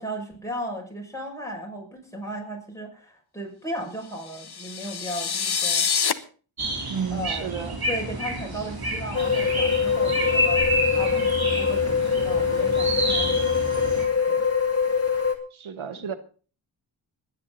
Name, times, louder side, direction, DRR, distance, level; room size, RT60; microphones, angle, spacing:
voice 1, 0.0-5.9 6.9-7.5 7.8-14.4 15.9-16.1, equal, 5° left, 0 dB, 6.2 m, -36 dB
sound 1, 4.2-6.1, left 6 dB, 55° left, 1.1 m, -26 dB
sound 2, 6.6-14.1, right 1 dB, 50° right, 3.8 m, -29 dB
voice 2, 6.9-7.8 15.5-16.1, right 7 dB, 90° right, 12 dB, 1.1 m, -32 dB
sound 3, 9.1-15.3, left 6 dB, 30° left, 2.5 m, -23 dB
21.5 x 9.9 x 4.0 m, 0.39 s
wide cardioid pair, 70°, 47 cm